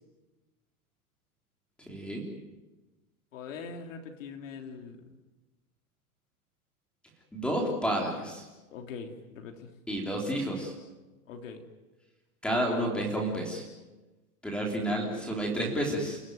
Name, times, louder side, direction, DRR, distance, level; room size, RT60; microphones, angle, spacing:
voice 1, 1.9-2.2 7.3-8.4 9.9-10.7 12.4-13.6 14.4-16.2, right 1 dB, ahead, 0 dB, 3.5 m, -30 dB
voice 2, 3.3-5.1 8.7-9.7 11.3-11.6, left 5 dB, 55° left, 4 dB, 3.5 m, -42 dB
29.5 x 16.0 x 9.4 m, 1.2 s
supercardioid pair, 175°, 45 cm